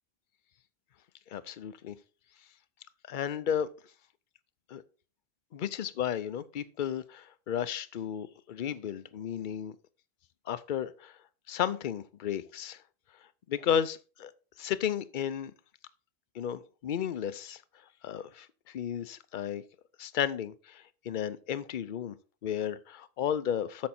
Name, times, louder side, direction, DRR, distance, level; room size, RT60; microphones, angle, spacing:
voice 1, 1.3-1.9 3.1-3.7 4.7-4.8 5.5-9.7 10.5-11.1 11.5-12.8 13.5-14.3 14.6-15.5 16.3-17.6 18.0-19.6 20.0-22.1 22.4-23.9, left 9 dB, 55° left, 0.7 m, -33 dB
8.6 x 6.5 x 4.3 m
omnidirectional pair, 1.1 m